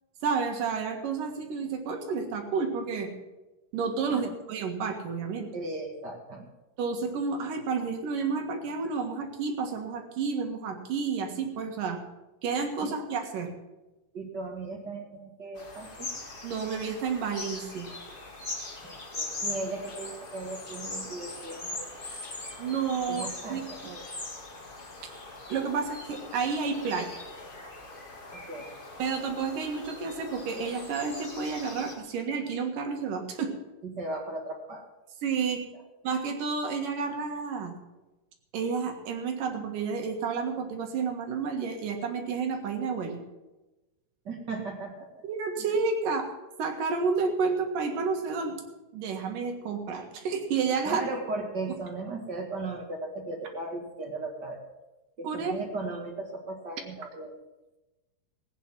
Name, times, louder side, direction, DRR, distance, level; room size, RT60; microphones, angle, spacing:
voice 1, 0.2-3.1 3.7-5.5 6.8-12.0 12.4-13.5 16.4-17.9 22.6-23.6 25.5-27.2 29.0-33.5 35.2-35.6 36.0-37.7 38.5-43.2 45.2-46.3 46.6-48.6 48.9-51.0 55.2-55.5, right 5 dB, 70° right, 4 dB, 3.2 m, -30 dB
voice 2, 5.5-6.5 12.8-12.9 14.1-16.1 18.8-22.0 23.1-24.1 28.3-28.7 33.8-34.9 44.2-45.1 50.8-54.6 55.2-57.3, right 2 dB, 40° right, 3 dB, 1.6 m, -37 dB
sound 1, 15.6-32.0, left 2 dB, 40° left, 0.7 m, -41 dB
17.5 x 9.2 x 5.9 m, 1.0 s
omnidirectional pair, 4.1 m